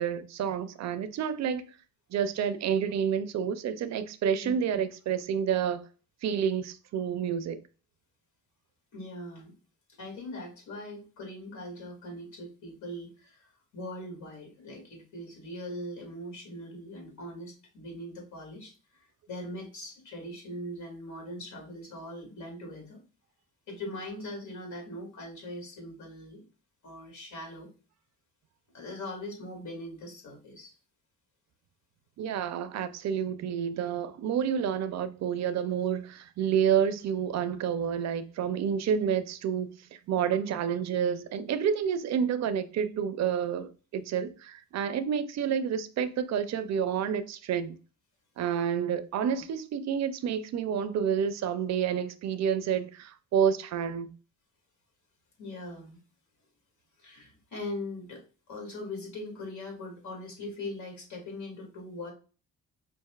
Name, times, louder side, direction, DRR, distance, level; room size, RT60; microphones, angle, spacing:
voice 1, 0.0-1.7 2.1-5.8 6.2-7.6 32.2-47.8 48.4-54.1, right 8 dB, 60° right, 0.5 m, -29 dB
voice 2, 8.9-9.5 10.0-23.0 23.7-26.4 26.8-27.7 28.7-30.7 55.4-56.0 57.0-58.2 58.5-62.1, left 1 dB, 70° left, 2.1 m, -41 dB
5.6 x 2.6 x 2.3 m
cardioid pair, 90°, 30 cm